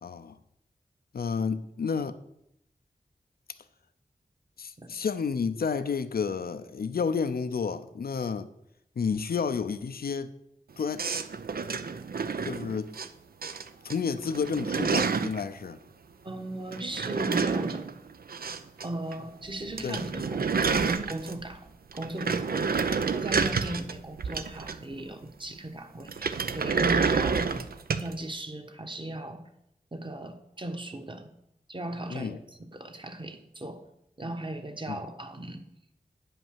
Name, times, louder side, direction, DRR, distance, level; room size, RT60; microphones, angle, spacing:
voice 1, 0.0-0.4 1.1-2.2 4.6-8.5 9.0-10.3 10.8-11.1 12.4-12.9 13.8-15.8 19.8-20.0 32.1-32.4 34.9-35.0, left 5 dB, 80° left, 11 dB, 0.6 m, -30 dB
sound 1, 11.0-13.1 13.4-14.0 14.2-15.4 16.7-18.9 19.1-19.2 19.5-19.6 19.8-21.5 21.9-25.0 26.1-28.1, right 5 dB, 75° right, 0.6 m, -29 dB
voice 2, 16.2-17.9 18.8-27.7 28.0-29.4 29.9-31.3 31.7-33.8 34.2-35.6, right 1 dB, 30° right, 6 dB, 1.3 m, -37 dB
9.3 x 5.5 x 7.4 m, 0.79 s
wide cardioid pair, 60°, 15 cm